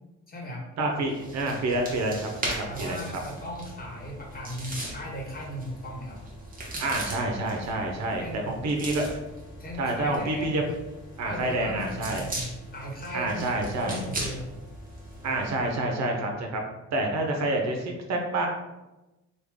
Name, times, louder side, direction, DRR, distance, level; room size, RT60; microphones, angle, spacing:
voice 1, 0.3-0.7 2.7-6.2 8.2-8.6 9.6-10.6 11.2-13.5 13.8-14.5 15.2-15.5, equal, 30° left, -3 dB, 1.2 m, -37 dB
voice 2, 0.8-3.0 6.8-9.0 9.8-10.6 11.2-12.2 13.1-14.0 15.2-16.6 16.9-18.5, right 2 dB, 60° right, 2 dB, 0.7 m, -28 dB
sound 1, 1.0-15.7, right 1 dB, 30° right, 1.0 m, -39 dB
3.2 x 2.3 x 3.5 m, 1.0 s
cardioid pair, 90°, 30 cm